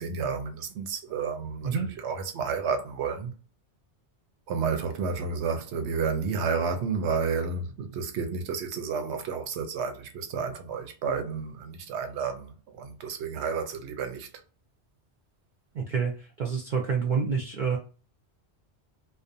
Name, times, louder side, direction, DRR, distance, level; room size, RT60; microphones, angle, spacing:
voice 1, 0.0-1.7 2.0-3.3 4.5-14.3, right 5 dB, 85° right, 0.9 m, -31 dB
voice 2, 15.7-17.8, right 5 dB, 55° right, 0.6 m, -28 dB
2.4 x 2.1 x 2.6 m
omnidirectional pair, 1.1 m